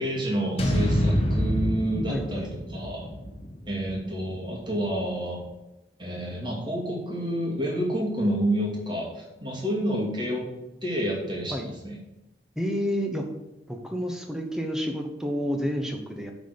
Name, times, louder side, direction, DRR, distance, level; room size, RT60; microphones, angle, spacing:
voice 1, 0.0-3.1 3.7-5.4 6.0-10.5 10.8-12.0, equal, 25° right, -3 dB, 2.5 m, -29 dB
sound 1, 0.6-4.8, equal, 35° left, 1.4 m, -27 dB
voice 2, 2.1-2.4 11.5-11.7 12.6-13.3 13.7-16.3, equal, 5° right, 3 dB, 1.0 m, -29 dB
9.1 x 4.2 x 6.8 m, 0.94 s
head